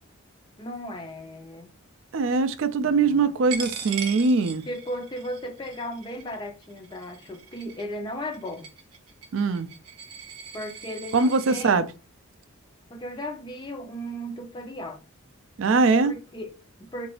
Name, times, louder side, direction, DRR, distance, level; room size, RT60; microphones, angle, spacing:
voice 1, 0.6-1.7 2.8-3.3 4.7-8.7 10.5-11.8 12.9-15.0 16.0-17.1, equal, 20° left, 0.3 m, -36 dB
voice 2, 2.1-4.6 9.3-9.7 11.1-11.8 15.6-16.1, right 4 dB, 60° right, 0.4 m, -22 dB
Coin (dropping), 3.5-11.7, right 7 dB, 85° right, 0.7 m, -40 dB
3.8 x 2.6 x 3.1 m
head